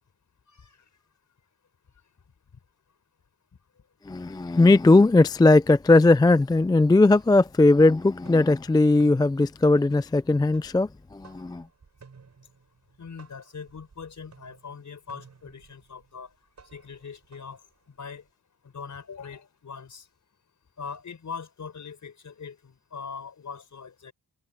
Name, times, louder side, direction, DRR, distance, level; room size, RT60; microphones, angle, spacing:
voice 1, 4.1-11.6, left 2 dB, 10° left, 0.4 m, -19 dB
sound 1, 4.3-4.4 4.8-5.4 5.7-7.9 8.1-18.3, right 5 dB, 50° right, 6.9 m, -56 dB
voice 2, 13.0-16.3 16.7-18.2 18.6-20.1 20.8-24.1, left 6 dB, 55° left, 5.7 m, -41 dB
cardioid pair, 100°, 36 cm